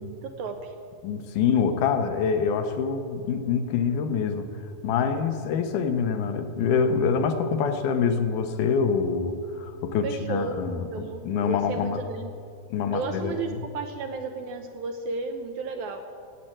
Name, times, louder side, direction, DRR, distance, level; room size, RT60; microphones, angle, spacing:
voice 1, 0.0-0.7 10.0-12.3 12.8-16.0, right 4 dB, 75° right, 5 dB, 1.8 m, -33 dB
voice 2, 1.0-4.5 4.8-12.0 12.7-13.6, left 6 dB, 70° left, 7 dB, 2.2 m, -25 dB
16.5 x 7.6 x 8.9 m, 2.4 s
omnidirectional pair, 4.2 m